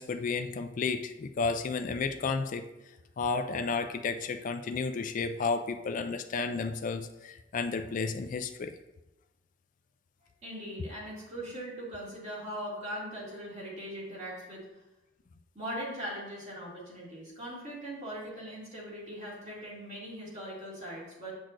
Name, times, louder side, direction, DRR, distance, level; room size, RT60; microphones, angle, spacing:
voice 1, 0.0-2.7 3.2-8.7, left 4 dB, 40° left, 7 dB, 0.3 m, -32 dB
voice 2, 10.4-14.6 15.5-21.3, equal, 35° right, -6 dB, 2.3 m, -40 dB
7.5 x 6.2 x 2.6 m, 0.99 s
head